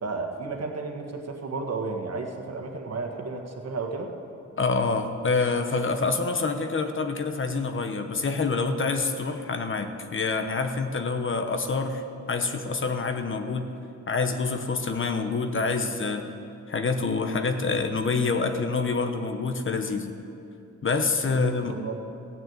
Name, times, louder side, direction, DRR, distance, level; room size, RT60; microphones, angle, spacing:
voice 1, 0.0-4.1 21.3-22.0, right 4 dB, 60° right, 3 dB, 1.6 m, -33 dB
voice 2, 4.6-13.7 14.1-16.3 16.7-20.1 20.8-21.7, left 4 dB, 40° left, 7 dB, 1.0 m, -27 dB
15.0 x 6.5 x 8.8 m, 2.6 s
cardioid pair, 90°, 30 cm